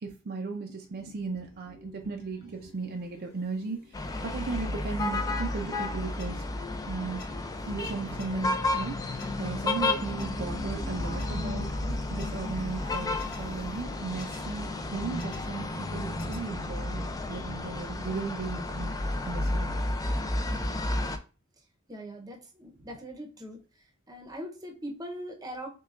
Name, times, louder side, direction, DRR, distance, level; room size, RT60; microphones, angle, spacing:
voice 1, 0.0-6.4 6.9-19.8, right 4 dB, 45° right, 3 dB, 0.5 m, -36 dB
sound 1, 0.9-17.1, left 1 dB, 85° left, 1.6 m, -46 dB
sound 2, 3.9-21.2, left 2 dB, 15° left, 0.4 m, -32 dB
sound 3, 6.2-6.3 7.2-7.3 8.2-8.3 9.2-9.3 10.2-10.3 11.2-11.3 12.2-12.3 13.2-13.4 14.2-14.4 15.2-15.4 16.2-16.4, left 5 dB, 45° left, 0.8 m, -47 dB
voice 2, 21.9-23.6 24.1-25.7, equal, 20° right, 2 dB, 0.8 m, -41 dB
6.4 x 2.3 x 2.4 m, 0.34 s
head